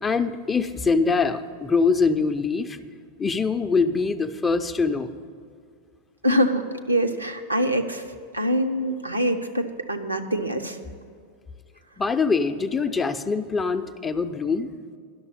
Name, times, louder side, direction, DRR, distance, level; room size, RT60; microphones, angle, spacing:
voice 1, 0.0-2.8 3.2-5.1 12.0-14.7, left 4 dB, 15° left, 9 dB, 0.5 m, -23 dB
voice 2, 6.2-8.0 8.3-10.8, equal, 85° right, 4 dB, 0.8 m, -24 dB
11.0 x 6.7 x 8.7 m, 2.2 s
figure-of-eight pair, 90°, 0 cm